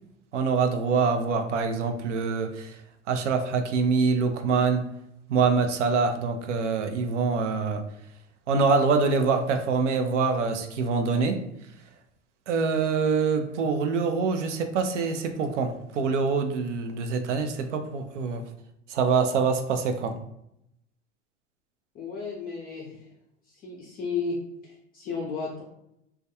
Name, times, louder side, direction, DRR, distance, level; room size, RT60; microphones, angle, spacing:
voice 1, 0.3-2.8 3.1-4.9 5.3-7.8 8.5-11.4 12.5-18.4 18.9-20.2, right 5 dB, 85° right, 7 dB, 0.5 m, -25 dB
voice 2, 21.9-23.1 23.5-25.6, left 4 dB, 25° left, -2 dB, 0.4 m, -34 dB
2.2 x 2.2 x 2.7 m, 0.78 s
hypercardioid pair, 90°, 35 cm